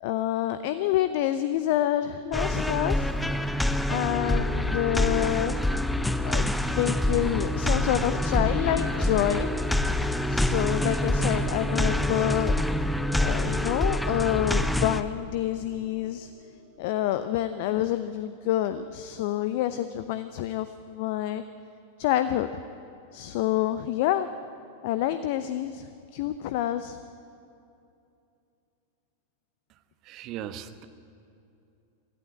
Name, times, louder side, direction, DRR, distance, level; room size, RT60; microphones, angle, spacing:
voice 1, 0.0-3.1 3.9-5.6 6.2-9.5 10.3-12.5 13.2-16.3 16.8-21.4 22.0-22.5 23.1-24.3 24.8-25.9 26.1-27.0, left 12 dB, 50° left, 12 dB, 0.7 m, -27 dB
sound 1, 2.3-15.0, left 1 dB, 5° left, 0.8 m, -26 dB
sound 2, 5.3-17.1, right 2 dB, 60° right, 3.5 m, -48 dB
voice 2, 30.0-30.8, right 10 dB, 40° right, 10 dB, 1.2 m, -38 dB
22.0 x 14.5 x 9.9 m, 2.6 s
figure-of-eight pair, 90°, 0 cm